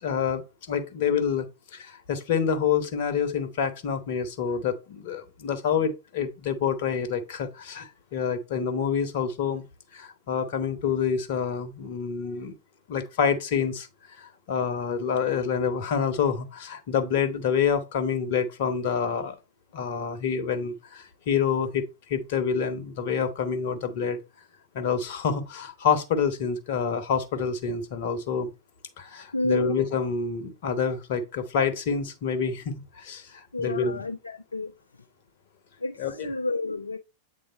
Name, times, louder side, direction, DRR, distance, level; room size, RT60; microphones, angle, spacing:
voice 1, 0.0-9.6 9.9-12.5 12.9-13.9 14.2-19.3 19.7-24.2 24.7-28.5 29.0-34.0 36.0-36.3, left 6 dB, 50° left, 1.1 m, -27 dB
voice 2, 29.3-29.7 33.5-34.7 35.8-37.0, left 2 dB, 80° left, 0.4 m, -30 dB
7.9 x 3.6 x 3.9 m
figure-of-eight pair, 90°, 0 cm